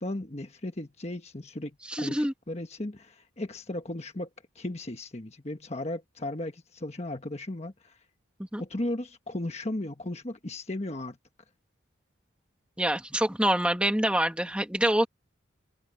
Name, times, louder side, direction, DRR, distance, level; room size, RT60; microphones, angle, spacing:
voice 1, 0.0-4.3 4.5-8.0 8.6-11.2, left 1 dB, 30° left, 1.3 m, -36 dB
voice 2, 1.9-2.3 8.5-8.6 12.8-15.1, right 1 dB, 5° right, 1.9 m, -26 dB
open air
head